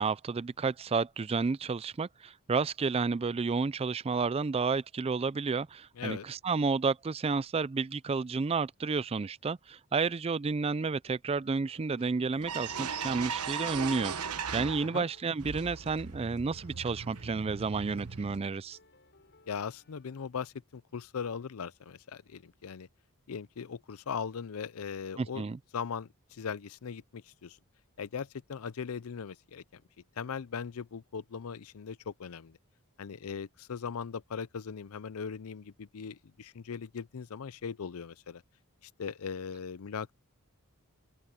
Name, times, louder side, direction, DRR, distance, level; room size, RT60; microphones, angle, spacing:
voice 1, 0.0-14.1 14.5-18.8 25.2-25.6, right 4 dB, 25° right, 0.4 m, -31 dB
sound 1, 11.3-20.1, left 2 dB, 50° left, 5.8 m, -63 dB
sound 2, 12.0-12.1 12.4-15.1 15.4-18.4, right 6 dB, 90° right, 1.2 m, -38 dB
voice 2, 19.5-22.9 23.3-25.5 25.7-27.6 28.0-29.8 30.2-32.6 33.0-38.4 38.8-40.1, left 6 dB, 70° left, 0.5 m, -39 dB
open air
head